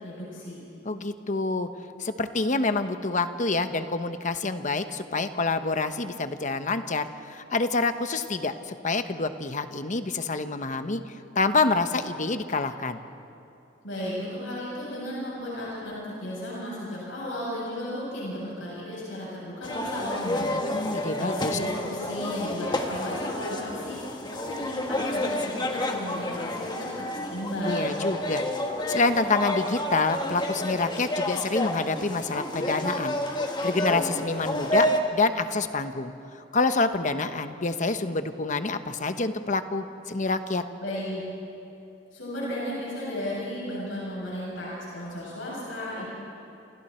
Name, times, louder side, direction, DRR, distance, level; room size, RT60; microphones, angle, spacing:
voice 1, 0.0-0.6 13.8-28.0 40.8-41.2 42.1-46.0, left 1 dB, 75° left, -6 dB, 7.9 m, -34 dB
voice 2, 0.8-1.7 2.0-13.0 20.7-21.6 27.6-28.4 28.9-36.1 36.5-40.6, left 3 dB, 40° left, 9 dB, 1.0 m, -27 dB
sound 1, 19.6-35.0, left 1 dB, 25° left, 1.7 m, -30 dB
29.5 x 28.0 x 4.5 m, 2.8 s
head